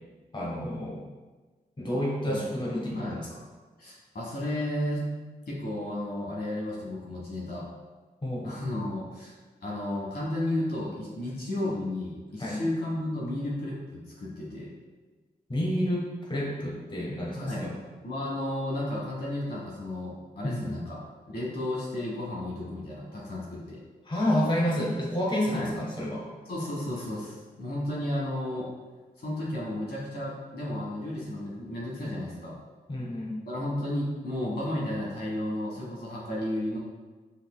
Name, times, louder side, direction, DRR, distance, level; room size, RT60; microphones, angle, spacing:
voice 1, 0.3-1.0 1.8-3.4 8.2-8.5 12.4-12.6 15.5-17.8 20.4-20.7 24.1-26.2 32.9-33.4, left 1 dB, 30° left, -4 dB, 1.2 m, -29 dB
voice 2, 3.8-5.1 5.5-7.7 8.4-9.3 9.6-14.7 17.3-21.0 21.3-23.8 25.5-25.7 26.5-28.7 29.2-32.6 33.4-36.8, left 1 dB, 70° left, -5 dB, 1.5 m, -33 dB
5.5 x 3.6 x 2.2 m, 1.3 s
cardioid pair, 45°, 17 cm